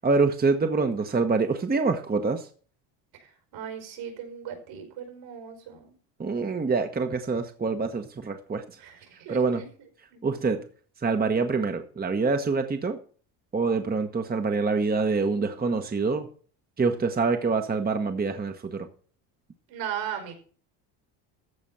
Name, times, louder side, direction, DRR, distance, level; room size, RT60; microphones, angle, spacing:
voice 1, 0.0-2.5 6.2-8.6 9.3-9.6 10.2-10.6 11.0-13.0 13.5-16.3 16.8-18.9, right 4 dB, 20° right, 6 dB, 1.2 m, -25 dB
voice 2, 3.2-6.0 8.8-9.7 10.1-10.2 19.7-20.4, right 9 dB, 70° right, 5 dB, 5.1 m, -37 dB
14.5 x 5.0 x 7.3 m, 0.44 s
supercardioid pair, 95°, 47 cm